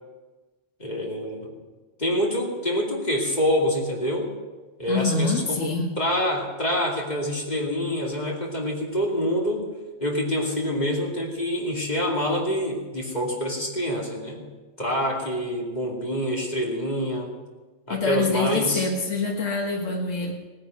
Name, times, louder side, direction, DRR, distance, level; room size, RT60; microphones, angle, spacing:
voice 1, 0.8-1.5 2.0-4.3 4.8-5.7 6.0-9.7 10.0-14.4 14.8-17.3 17.9-18.9, equal, 35° left, -1 dB, 2.8 m, -26 dB
voice 2, 4.9-5.9 17.9-20.3, left 3 dB, 85° left, 1 dB, 1.8 m, -25 dB
17.0 x 10.5 x 6.6 m, 1.3 s
omnidirectional pair, 1.3 m